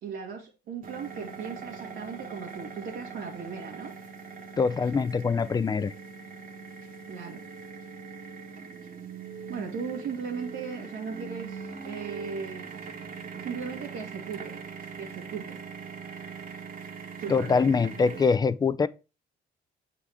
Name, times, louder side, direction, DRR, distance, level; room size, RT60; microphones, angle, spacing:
voice 1, 0.0-3.9 7.1-7.5 9.5-12.7 13.4-14.5 15.0-15.6 17.2-17.8, right 6 dB, 85° right, 1.4 m, -37 dB
sound 1, 0.8-18.3, right 5 dB, 45° right, 1.1 m, -42 dB
voice 2, 4.6-5.9 17.3-18.9, left 5 dB, 20° left, 0.4 m, -24 dB
8.0 x 3.8 x 3.4 m
cardioid pair, 90°, 20 cm